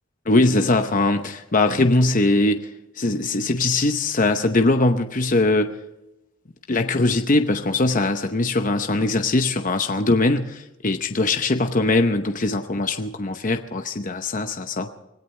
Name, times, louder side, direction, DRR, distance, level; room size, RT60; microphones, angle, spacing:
voice 1, 0.3-2.7 3.0-5.7 6.7-14.9, left 2 dB, 40° left, 6 dB, 0.8 m, -21 dB
25.0 x 17.5 x 3.3 m, 0.92 s
head